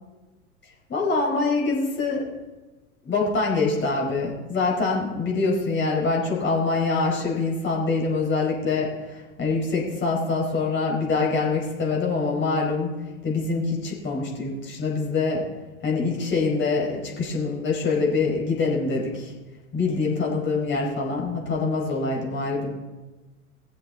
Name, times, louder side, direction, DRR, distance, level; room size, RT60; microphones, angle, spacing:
voice 1, 0.9-2.2 3.0-12.9 13.2-15.4 15.8-19.3 19.7-22.7, left 3 dB, 25° left, -2 dB, 4.9 m, -25 dB
20.5 x 7.9 x 4.1 m, 1.2 s
figure-of-eight pair, 95°, 44 cm